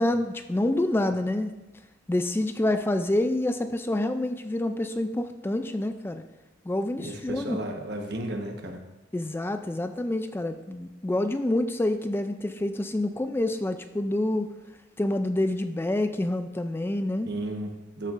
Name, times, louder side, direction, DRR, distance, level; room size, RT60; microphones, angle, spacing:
voice 1, 0.0-1.5 2.1-6.2 6.7-7.6 9.1-14.5 15.0-17.3, left 1 dB, 15° left, 9 dB, 0.3 m, -27 dB
voice 2, 7.0-8.8 17.3-18.1, right 1 dB, 65° right, 3 dB, 1.2 m, -34 dB
13.0 x 6.4 x 2.5 m, 1.0 s
head